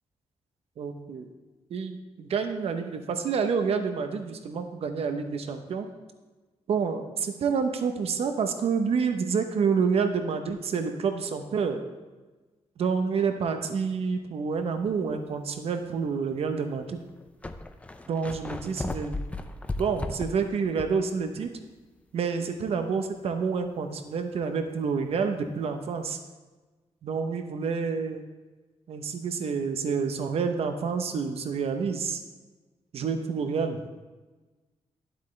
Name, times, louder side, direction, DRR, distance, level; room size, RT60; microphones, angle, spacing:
voice 1, 0.8-1.3 1.7-5.9 6.7-11.8 12.8-17.0 18.1-19.1 19.8-21.5 22.1-26.2 27.0-28.2 28.9-32.2 32.9-33.8, right 5 dB, 65° right, 6 dB, 0.7 m, -28 dB
sound 1, 14.9-15.1 15.8-15.9 16.8-16.9 17.1-21.1 21.4-21.5 25.1-25.2, left 2 dB, 10° left, 0.4 m, -36 dB
12.0 x 8.0 x 3.2 m, 1.2 s
wide cardioid pair, 160°, 11 cm